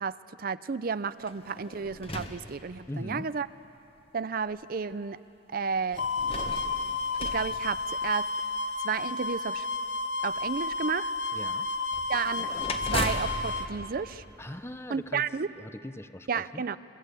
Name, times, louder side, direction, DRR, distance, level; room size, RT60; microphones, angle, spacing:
voice 1, 0.0-3.5 4.1-5.2 5.5-6.1 7.2-8.3 8.8-9.7 10.2-11.1 12.1-12.5 12.8-14.2 14.9-15.5 16.3-16.8, right 5 dB, 50° right, 15 dB, 0.5 m, -32 dB
sound 1, 1.2-3.2 4.0-4.1 5.9-8.5 11.9-15.0, left 2 dB, 30° left, 1.4 m, -38 dB
voice 2, 2.9-3.3 11.3-11.7 14.4-15.3 15.5-16.6, left 1 dB, 15° left, 11 dB, 0.7 m, -40 dB
sound 2, 6.0-13.7, left 3 dB, 80° left, 0.9 m, -32 dB
26.5 x 23.5 x 8.3 m, 2.9 s
head